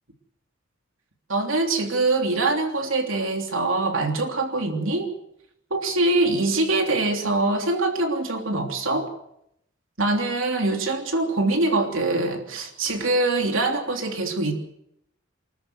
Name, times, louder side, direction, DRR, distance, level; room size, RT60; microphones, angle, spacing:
voice 1, 1.3-5.1 5.7-9.1 10.0-14.5, right 2 dB, 75° right, 4 dB, 3.2 m, -23 dB
25.5 x 14.0 x 7.9 m, 0.77 s
head